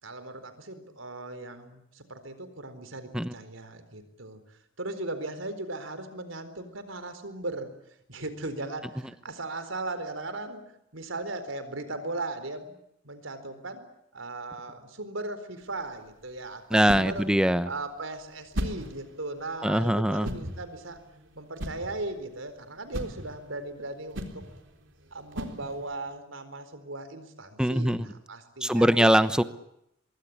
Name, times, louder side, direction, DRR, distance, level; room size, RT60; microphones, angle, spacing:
voice 1, 0.0-7.7 8.1-12.8 13.0-13.8 14.1-17.3 17.6-21.0 21.4-24.4 25.1-29.2, right 2 dB, 85° right, 10 dB, 4.2 m, -38 dB
sound 1, 15.6-26.1, equal, 70° right, 3.8 m, -39 dB
voice 2, 16.7-17.7 19.6-20.3 27.6-28.1 28.6-29.4, equal, 5° right, 12 dB, 1.0 m, -22 dB
25.0 x 23.0 x 8.7 m, 0.79 s
head